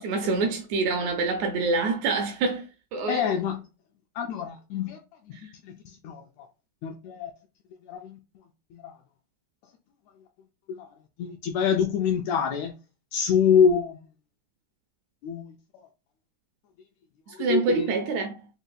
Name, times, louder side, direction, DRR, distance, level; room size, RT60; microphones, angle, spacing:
voice 1, 0.0-2.6 2.9-3.2 5.3-5.5 17.3-18.4, right 3 dB, 80° right, 1.6 m, -26 dB
voice 2, 3.1-3.6 4.2-5.0 5.6-6.2 6.8-7.3 7.9-8.2 8.7-8.9 10.7-10.9 11.2-12.7 13.1-14.0 15.2-15.5 17.3-17.9, left 7 dB, 80° left, 1.6 m, -25 dB
5.0 x 2.6 x 2.2 m
omnidirectional pair, 3.5 m